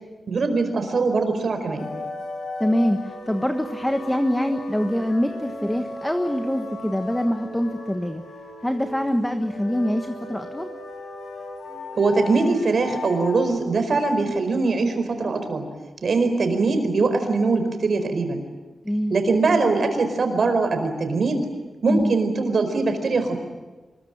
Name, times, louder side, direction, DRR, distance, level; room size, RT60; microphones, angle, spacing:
voice 1, 0.3-1.9 11.9-15.7 16.0-18.4 19.1-21.5 21.8-23.4, right 3 dB, 50° right, 7 dB, 4.7 m, -22 dB
sound 1, 1.8-13.4, left 1 dB, 85° left, 7.1 m, -36 dB
voice 2, 2.6-8.2 8.6-10.7 18.8-19.2 21.9-22.1, equal, 5° left, 7 dB, 1.3 m, -24 dB
25.5 x 22.0 x 8.9 m, 1.3 s
wide cardioid pair, 145°, 0 cm